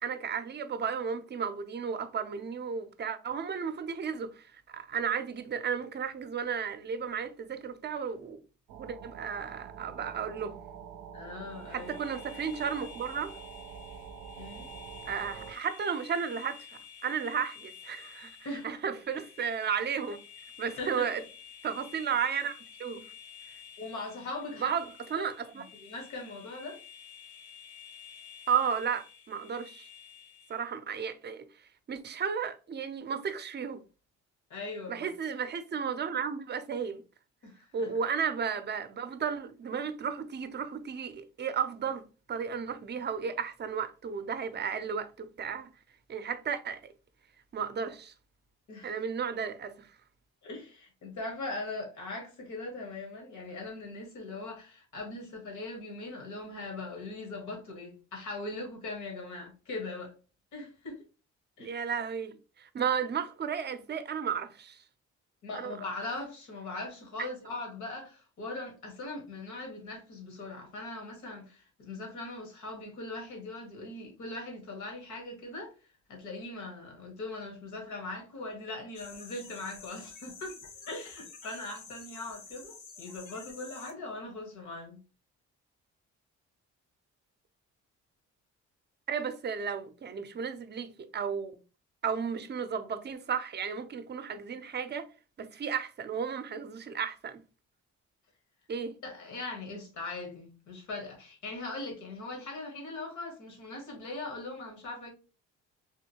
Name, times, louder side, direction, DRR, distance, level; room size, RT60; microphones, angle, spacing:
voice 1, 0.0-8.4 8.7-10.6 11.7-13.3 15.1-16.7 17.0-18.3 18.6-20.2 20.6-21.2 21.6-22.5 22.8-23.0 24.6-24.9 25.1-25.6 28.5-29.9 30.5-31.5 31.9-33.8 34.9-37.0 37.7-45.7 46.1-46.8 47.5-48.1 48.8-49.9 61.6-64.8 65.5-65.7 67.2-67.3 89.1-91.6 92.0-95.1 95.4-97.4 98.7-98.9, right 7 dB, 35° right, 0.5 m, -33 dB
sound 1, 8.7-15.5, right 7 dB, 85° right, 0.4 m, -46 dB
voice 2, 11.1-11.9 14.4-14.7 18.4-18.7 20.8-21.1 23.8-24.7 25.2-25.3 25.5-26.8 34.5-35.1 37.4-37.9 48.7-49.0 50.4-60.1 60.5-61.0 61.6-61.8 65.4-80.6 80.9-85.0 99.0-105.1, left 2 dB, 70° left, 1.5 m, -40 dB
sound 2, 11.5-30.7, left 7 dB, 55° left, 0.7 m, -51 dB
sound 3, 78.9-83.9, left 4 dB, 85° left, 1.1 m, -49 dB
3.5 x 2.6 x 2.9 m
cardioid pair, 90°, 30 cm